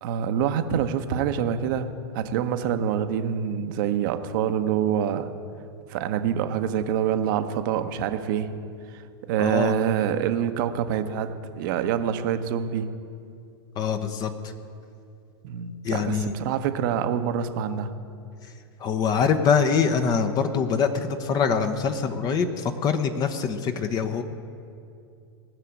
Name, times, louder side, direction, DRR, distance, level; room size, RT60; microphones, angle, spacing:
voice 1, 0.0-1.9 2.1-5.3 5.9-8.5 8.9-12.9 15.4-17.9, right 9 dB, 50° right, 9 dB, 0.9 m, -26 dB
voice 2, 9.4-9.7 13.8-14.3 15.8-16.3 18.4-18.5 18.8-24.2, left 6 dB, 30° left, 7 dB, 0.9 m, -24 dB
18.5 x 6.7 x 8.8 m, 2.5 s
figure-of-eight pair, 100°, 13 cm